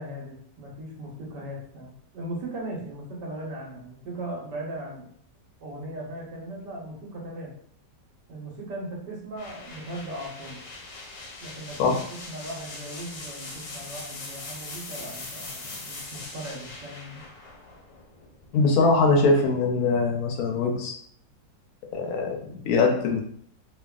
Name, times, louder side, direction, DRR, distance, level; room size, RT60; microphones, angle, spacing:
voice 1, 0.0-5.1 5.6-7.5 8.3-10.6 11.4-12.0 12.3-17.2, right 1 dB, 75° right, -2 dB, 1.5 m, -38 dB
sound 1, 9.4-19.1, left 2 dB, 90° left, 1.4 m, -41 dB
voice 2, 18.5-20.9 21.9-23.2, left 3 dB, 70° left, 2 dB, 0.9 m, -22 dB
3.2 x 2.2 x 2.2 m, 0.63 s
omnidirectional pair, 1.9 m